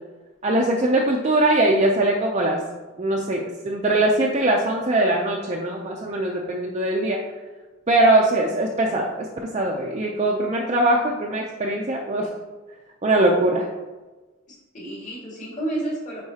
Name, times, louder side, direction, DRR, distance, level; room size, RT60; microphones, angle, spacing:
voice 1, 0.4-2.6 3.0-7.2 7.9-12.3 13.0-13.7, right 1 dB, 30° right, -1 dB, 0.5 m, -21 dB
voice 2, 14.5-16.2, right 1 dB, 35° left, -4 dB, 1.9 m, -31 dB
9.5 x 4.0 x 2.8 m, 1.2 s
head